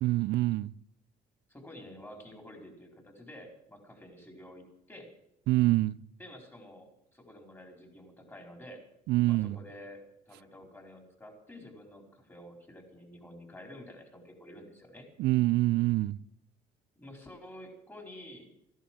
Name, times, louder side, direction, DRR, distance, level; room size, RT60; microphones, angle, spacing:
voice 1, 0.0-0.7 5.5-6.0 9.1-9.6 15.2-16.2, right 18 dB, 75° right, 0.5 m, -26 dB
voice 2, 1.5-5.1 6.2-8.8 9.2-15.1 17.0-18.5, left 1 dB, 15° left, 4.4 m, -50 dB
15.0 x 11.0 x 7.6 m
cardioid pair, 110°, 17 cm